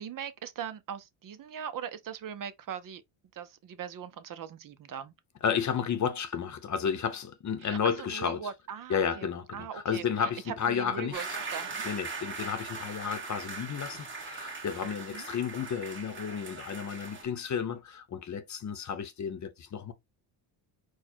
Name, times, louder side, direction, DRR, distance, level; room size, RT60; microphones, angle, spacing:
voice 1, 0.0-3.0 3.3-5.1 7.6-9.3 9.5-11.9 15.1-15.3, right 8 dB, 45° right, 0.7 m, -40 dB
voice 2, 5.4-8.5 8.9-11.2 11.8-19.9, left 7 dB, 35° left, 0.8 m, -32 dB
sound 1, 11.1-17.2, right 4 dB, 25° right, 1.6 m, -40 dB
4.5 x 2.3 x 4.3 m
cardioid pair, 95°, 47 cm